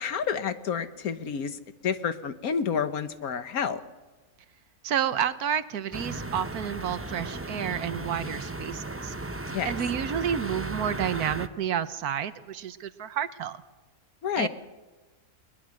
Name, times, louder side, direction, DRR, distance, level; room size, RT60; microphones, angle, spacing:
voice 1, 0.0-3.8 9.5-9.7 14.2-14.5, left 7 dB, 75° left, 11 dB, 1.6 m, -29 dB
voice 2, 4.8-9.1 9.6-13.6 14.4-14.5, right 9 dB, 85° right, 13 dB, 1.4 m, -30 dB
Residential Street Distant Traffic Wet Road, 5.9-11.5, right 2 dB, 15° right, 0.4 m, -35 dB
21.5 x 21.0 x 6.5 m, 1.2 s
omnidirectional pair, 1.6 m